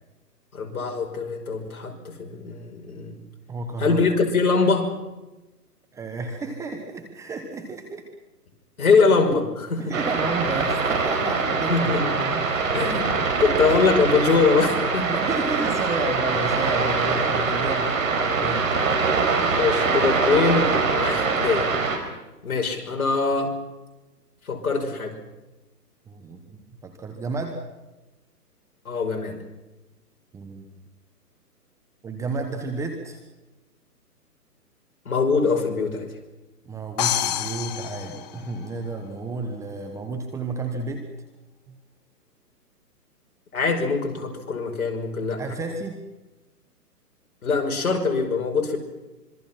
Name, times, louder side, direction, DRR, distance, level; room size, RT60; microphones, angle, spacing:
voice 1, 0.5-3.2 3.8-5.0 8.8-9.9 11.7-12.1 12.7-15.2 19.5-21.7 22.4-23.5 24.5-25.1 28.8-29.4 35.1-36.1 43.5-45.4 47.4-48.8, left 4 dB, 60° left, 3 dB, 5.7 m, -23 dB
voice 2, 3.5-4.0 5.9-8.0 9.8-12.7 13.7-13.8 15.0-18.7 26.1-27.6 30.3-30.7 32.0-33.2 36.6-41.0 41.7-41.8 45.4-46.0, right 3 dB, 5° right, 4 dB, 1.2 m, -32 dB
sound 1, 9.9-22.0, right 4 dB, 55° right, 5.1 m, -23 dB
sound 2, 37.0-38.9, left 11 dB, 25° left, 1.0 m, -28 dB
26.0 x 23.5 x 6.0 m, 1.1 s
hypercardioid pair, 145°, 48 cm